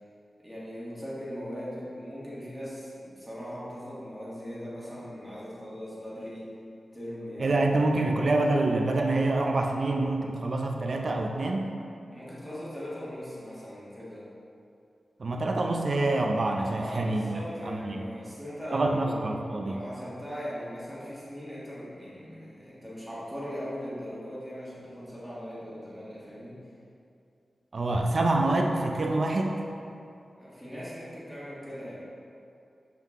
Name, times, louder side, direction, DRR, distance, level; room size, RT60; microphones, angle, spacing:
voice 1, 0.4-6.5 6.9-8.0 12.1-14.3 16.7-19.3 19.6-26.6 30.4-32.0, equal, ahead, -9 dB, 1.5 m, -39 dB
voice 2, 7.4-11.7 15.2-18.1 18.7-19.8 27.7-29.6, right 2 dB, 50° right, 2 dB, 0.5 m, -26 dB
7.3 x 3.7 x 3.6 m, 2.6 s
wide cardioid pair, 140°, 0 cm